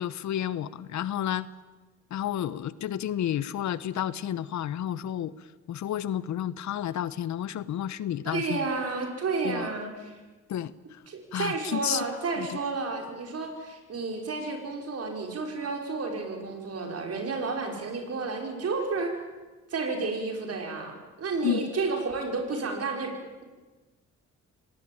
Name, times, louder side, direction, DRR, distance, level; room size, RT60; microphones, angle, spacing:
voice 1, 0.0-1.5 2.1-5.3 5.7-8.7 9.4-9.8 10.5-10.7 11.3-12.0 12.4-12.6 21.4-21.6, left 11 dB, 70° left, 17 dB, 1.0 m, -31 dB
voice 2, 8.3-10.1 11.1-19.2 19.7-23.1, right 4 dB, 55° right, 3 dB, 5.6 m, -31 dB
26.0 x 18.5 x 8.8 m, 1.2 s
cardioid pair, 90°, 30 cm